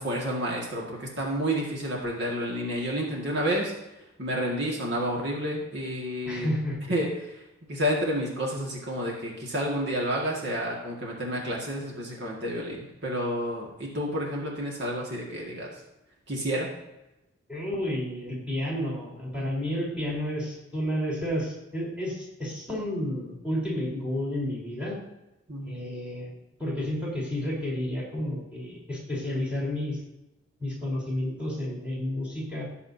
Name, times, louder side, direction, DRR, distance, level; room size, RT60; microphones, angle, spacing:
voice 1, 0.0-3.7 4.2-6.5 6.9-7.1 7.7-15.7 16.3-16.7 25.5-25.8, equal, 60° right, -2 dB, 1.8 m, -30 dB
voice 2, 6.3-6.9 17.5-25.0 25.6-26.3 26.6-30.0 30.6-32.6, left 1 dB, 5° right, -6 dB, 4.0 m, -31 dB
17.0 x 6.9 x 2.7 m, 0.95 s
head